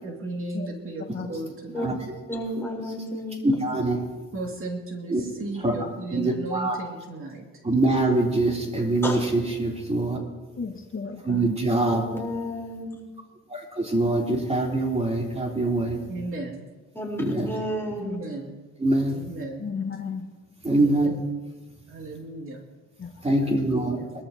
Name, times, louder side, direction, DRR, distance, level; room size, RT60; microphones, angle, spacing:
voice 1, 0.0-2.0 4.3-7.5 16.1-16.7 18.0-18.6 19.1-19.7 20.8-21.3 21.9-22.7 23.4-24.1, right 2 dB, 45° right, 1 dB, 2.6 m, -36 dB
voice 2, 2.3-3.4 9.0-9.2 11.9-13.0 16.9-18.2, left 1 dB, 10° left, -2 dB, 4.3 m, -31 dB
voice 3, 3.4-4.0 5.1-5.2 5.6-5.7 6.1-6.8 7.6-10.2 11.3-12.0 13.5-16.0 17.2-17.5 18.8-19.1 20.6-21.1 23.2-24.0, right 2 dB, 20° right, -1 dB, 3.6 m, -24 dB
voice 4, 10.6-11.5 19.6-20.2 23.0-23.2, left 5 dB, 45° left, 2 dB, 1.6 m, -34 dB
23.0 x 13.5 x 3.0 m, 1.2 s
cardioid pair, 90°, 30 cm